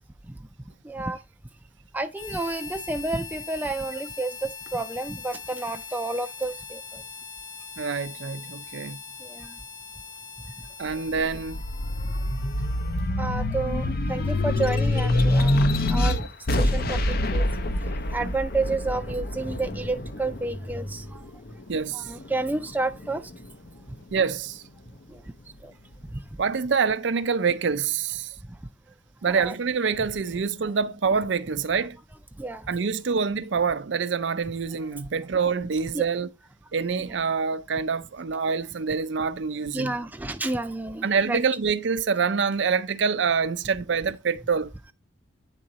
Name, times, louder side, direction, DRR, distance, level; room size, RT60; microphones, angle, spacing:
voice 1, 0.8-1.2 1.9-7.0 9.2-9.5 13.2-16.2 16.6-17.5 18.1-21.2 21.9-23.2 25.1-25.2 25.6-25.7 29.3-29.5 32.4-32.7 35.9-36.0 37.1-37.2 39.7-41.4, right 2 dB, 10° right, 0.4 m, -30 dB
Harmonica, 2.1-13.2, left 6 dB, 80° left, 1.0 m, -42 dB
voice 2, 7.8-9.0 10.8-11.6 21.7-22.1 24.1-24.6 26.4-28.3 29.2-32.0 32.7-36.3 36.7-40.0 41.0-44.7, right 5 dB, 70° right, 0.5 m, -26 dB
sound 1, 10.9-21.7 22.2-23.3, left 1 dB, 55° left, 0.7 m, -26 dB
8.9 x 3.8 x 4.0 m
head